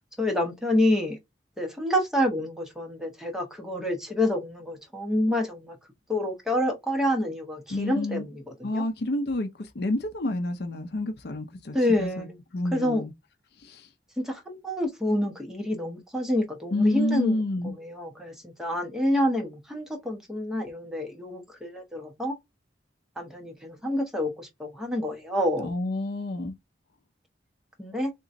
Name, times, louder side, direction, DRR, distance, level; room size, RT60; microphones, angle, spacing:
voice 1, 0.2-1.2 1.6-5.8 6.1-8.8 11.7-12.4 12.7-13.0 14.2-22.4 23.2-25.7 27.8-28.1, left 1 dB, 5° right, 1.1 m, -28 dB
voice 2, 7.7-8.3 8.6-9.5 9.7-12.3 12.5-13.1 13.6-13.9 16.7-17.7 25.6-26.5, left 1 dB, 60° left, 0.6 m, -29 dB
3.8 x 2.9 x 2.6 m
head